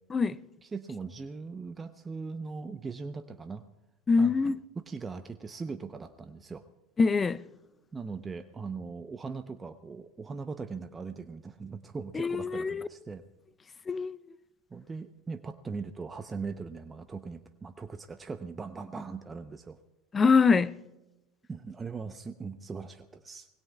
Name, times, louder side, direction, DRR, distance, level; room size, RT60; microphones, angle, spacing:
voice 1, 0.6-3.6 4.2-4.3 4.8-6.6 7.9-13.2 14.7-19.8 21.5-23.5, right 4 dB, 20° right, 0.8 m, -40 dB
voice 2, 4.1-4.6 7.0-7.4 12.1-12.9 13.9-14.2 20.1-20.7, left 4 dB, 25° left, 0.6 m, -24 dB
25.5 x 20.0 x 2.3 m
hypercardioid pair, 75°, 0 cm